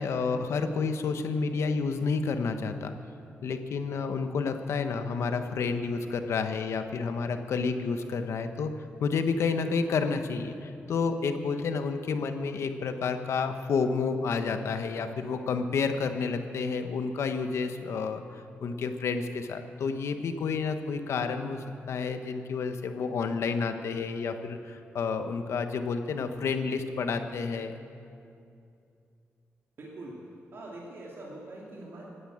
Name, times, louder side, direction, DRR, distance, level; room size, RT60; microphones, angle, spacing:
voice 1, 0.0-2.9 3.4-8.7 9.0-27.7, left 5 dB, 85° left, 7 dB, 1.1 m, -30 dB
voice 2, 29.8-32.1, right 2 dB, 60° right, -4 dB, 2.7 m, -43 dB
16.5 x 10.0 x 8.7 m, 2.5 s
wide cardioid pair, 110°, 5 cm